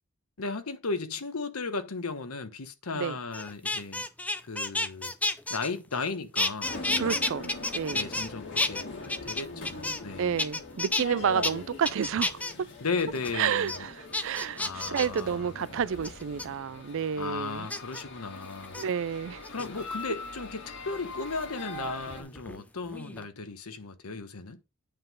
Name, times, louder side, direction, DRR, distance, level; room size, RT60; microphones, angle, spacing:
voice 1, 0.4-4.0 4.4-5.1 5.5-7.2 7.9-8.9 9.2-10.4 11.2-11.3 12.8-13.9 14.6-15.5 17.1-18.8 19.5-24.6, left 4 dB, 80° left, 1.0 m, -35 dB
sound 1, 3.3-6.1 6.4-8.3 8.6-10.1 10.4-11.0 11.4-11.5 11.9-12.5 13.0-13.3 13.7-13.8 14.1-15.2 16.0-16.5 17.7-18.0 18.6-18.8 19.4-20.0 21.4-22.6 22.9-23.3, left 2 dB, 5° left, 0.5 m, -31 dB
sound 2, 6.6-22.2, left 2 dB, 55° left, 2.0 m, -42 dB
voice 2, 7.0-8.1 10.2-12.7 13.3-17.7 18.8-19.5, right 7 dB, 60° right, 0.4 m, -30 dB
8.8 x 3.8 x 5.3 m
head